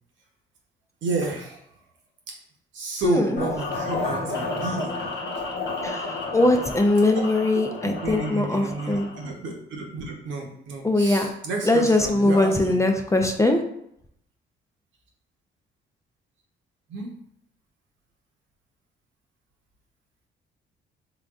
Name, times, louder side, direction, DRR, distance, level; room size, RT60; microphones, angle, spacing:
voice 1, 1.0-1.6 2.3-2.4 2.7-5.0 7.8-12.8 16.9-17.1, right 3 dB, 75° right, 0 dB, 1.0 m, -31 dB
voice 2, 3.0-3.4 5.8-9.1 10.8-11.3 11.6-13.6, left 2 dB, 15° left, 3 dB, 0.4 m, -21 dB
sound 1, 3.4-9.3, left 3 dB, 60° left, 1.0 m, -31 dB
3.8 x 3.5 x 2.4 m, 0.75 s
cardioid pair, 90°, 20 cm